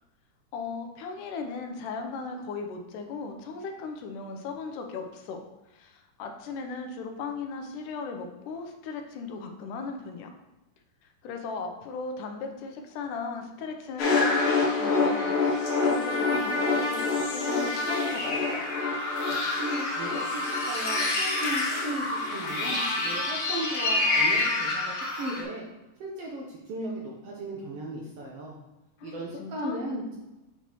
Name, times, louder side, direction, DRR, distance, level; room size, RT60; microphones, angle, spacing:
voice 1, 0.5-5.4 5.7-10.3 11.2-18.7 29.0-29.8, left 4 dB, 85° left, 4 dB, 2.3 m, -37 dB
sound 1, 14.0-25.4, left 3 dB, 65° left, 1.4 m, -27 dB
voice 2, 19.3-25.6 26.0-28.5 29.0-30.2, right 1 dB, 70° right, -3 dB, 1.5 m, -36 dB
7.1 x 5.5 x 3.0 m, 1.0 s
omnidirectional pair, 3.6 m